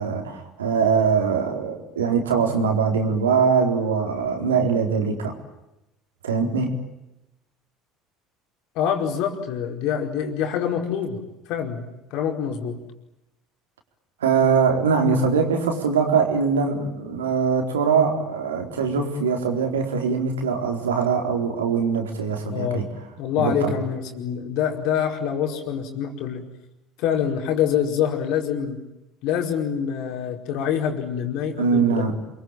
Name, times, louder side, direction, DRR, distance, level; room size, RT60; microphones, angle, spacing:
voice 1, 0.0-5.4 6.2-6.8 14.2-22.9 23.4-23.7 31.6-32.2, right 5 dB, 80° right, 3 dB, 4.1 m, -22 dB
voice 2, 8.7-11.2 11.5-12.8 22.5-22.9 23.2-26.4 27.0-28.8 29.2-32.1, left 8 dB, 60° left, 4 dB, 4.9 m, -25 dB
28.5 x 22.5 x 9.0 m, 0.95 s
figure-of-eight pair, 65°, 0 cm